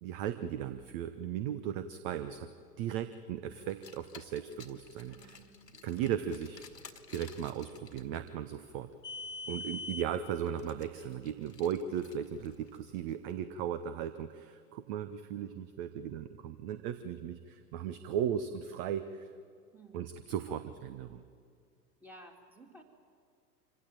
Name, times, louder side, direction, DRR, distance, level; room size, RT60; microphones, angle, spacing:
voice 1, 0.0-2.5 2.8-5.2 5.8-6.6 7.1-8.9 9.5-19.3 19.9-21.2, right 9 dB, 35° right, 12 dB, 1.0 m, -37 dB
Car, 3.6-13.1, left 3 dB, 80° left, 1.7 m, -48 dB
voice 2, 5.1-6.1 19.7-20.1 20.5-20.7 22.0-22.8, right 1 dB, 5° right, 3 dB, 2.6 m, -56 dB
25.5 x 16.5 x 9.2 m, 2.3 s
figure-of-eight pair, 100°, 48 cm